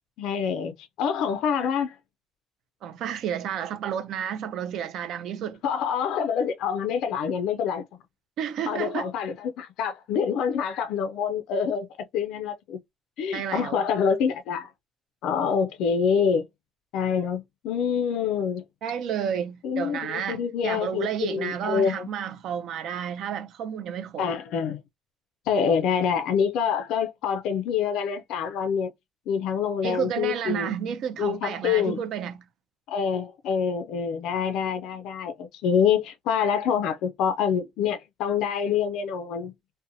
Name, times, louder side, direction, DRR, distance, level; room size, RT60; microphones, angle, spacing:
voice 1, 0.2-2.0 5.6-7.8 8.7-11.9 12.1-12.8 13.2-14.7 15.2-16.4 16.9-18.6 19.6-22.1 24.2-24.8 25.5-28.9 29.3-30.8 31.2-32.0 32.9-39.5, left 7 dB, 75° left, 0.3 m, -26 dB
voice 2, 2.8-5.6 8.4-9.1 13.3-13.8 18.8-24.3 29.8-32.4, right 8 dB, 60° right, 0.3 m, -31 dB
2.6 x 2.1 x 2.6 m
cardioid pair, 175°, 0 cm